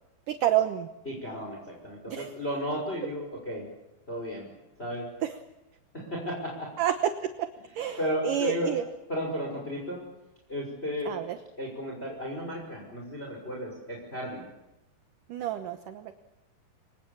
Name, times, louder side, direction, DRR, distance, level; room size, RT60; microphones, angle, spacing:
voice 1, 0.3-0.9 2.1-2.3 5.2-5.3 6.8-6.9 7.2-7.5 7.8-8.0 8.2-8.8 11.1-11.4 15.3-16.1, right 11 dB, 70° right, 8 dB, 2.1 m, -28 dB
voice 2, 1.0-3.7 4.1-4.5 4.8-5.1 5.9-6.7 8.0-10.0 10.5-11.1 11.6-14.4, equal, 15° left, 0 dB, 5.7 m, -34 dB
29.0 x 24.5 x 7.3 m, 0.93 s
omnidirectional pair, 5.0 m